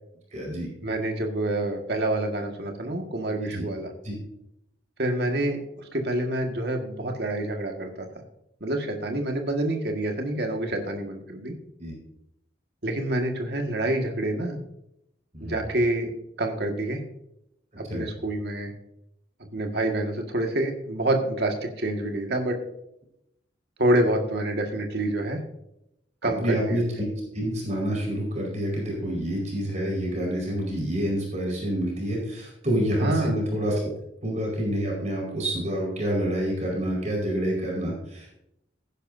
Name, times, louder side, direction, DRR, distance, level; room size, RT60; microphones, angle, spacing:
voice 1, 0.3-0.7 3.4-3.6 4.0-4.1 11.8-11.9 15.3-15.6 17.9-18.1 26.2-33.7 34.2-38.3, equal, 40° right, -3 dB, 4.8 m, -28 dB
voice 2, 0.8-3.9 5.0-8.1 8.6-11.5 12.8-14.6 15.4-16.1 16.4-17.0 17.8-18.7 19.4-22.6 23.8-25.4 26.2-26.8 33.0-33.4, right 1 dB, 60° right, 3 dB, 1.8 m, -27 dB
16.5 x 10.5 x 2.7 m, 0.80 s
head